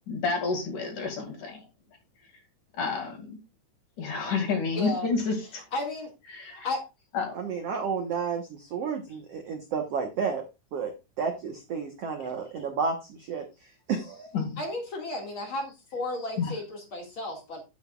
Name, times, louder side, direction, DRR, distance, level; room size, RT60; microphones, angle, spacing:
voice 1, 0.1-1.6 2.8-3.4 4.0-5.6 6.3-6.7 7.1-7.3 14.3-14.6 16.4-16.5, left 4 dB, 55° left, 4 dB, 3.5 m, -29 dB
voice 2, 4.8-5.1 5.7-6.1 6.6-6.8 14.6-17.6, left 2 dB, 40° left, 1 dB, 2.3 m, -33 dB
voice 3, 7.3-10.4 10.7-10.9 11.2-13.4 13.9-14.4, right 5 dB, 75° right, 4 dB, 1.4 m, -31 dB
10.5 x 8.8 x 2.4 m, 0.26 s
omnidirectional pair, 4.5 m